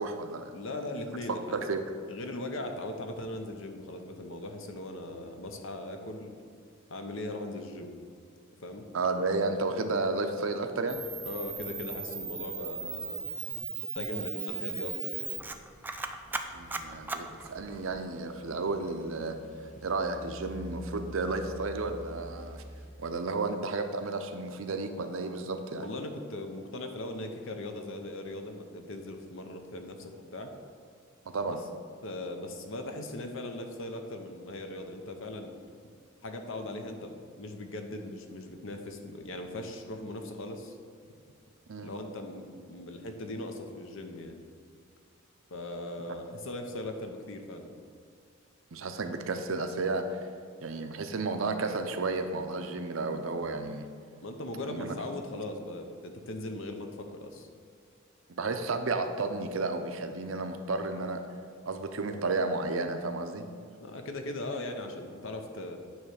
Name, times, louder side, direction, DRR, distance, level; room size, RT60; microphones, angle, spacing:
voice 1, 0.0-0.5 1.5-1.8 8.9-11.0 16.4-19.4 19.8-22.6 23.0-25.8 31.2-31.6 41.7-41.9 46.1-46.2 48.7-50.2 50.6-53.9 54.7-55.0 58.3-61.2 61.7-63.5, right 3 dB, 65° right, 7 dB, 0.6 m, -32 dB
voice 2, 0.5-1.6 2.1-6.3 6.9-7.9 8.6-8.8 11.2-13.6 13.9-15.3 25.8-30.5 32.0-35.6 36.2-40.8 41.8-44.4 45.5-47.7 54.2-57.5 63.8-65.8, left 1 dB, 65° left, 5 dB, 0.8 m, -39 dB
Camera, 10.9-18.0, right 4 dB, 10° right, 0.3 m, -37 dB
sound 1, 16.5-22.9, equal, 35° left, 0.9 m, -47 dB
9.4 x 3.2 x 6.4 m, 2.3 s
head